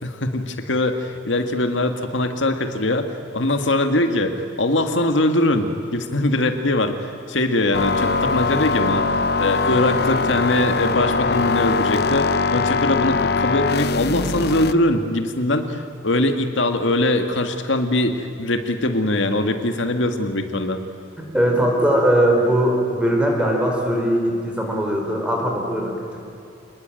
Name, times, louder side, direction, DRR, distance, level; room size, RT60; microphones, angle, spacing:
voice 1, 0.0-3.1 3.3-20.8, left 1 dB, 80° left, 6 dB, 1.8 m, -22 dB
sound 1, 7.7-14.7, left 4 dB, 55° left, 0.7 m, -21 dB
voice 2, 21.3-26.2, right 1 dB, 5° right, 0 dB, 4.7 m, -20 dB
27.5 x 20.5 x 9.0 m, 2.6 s
head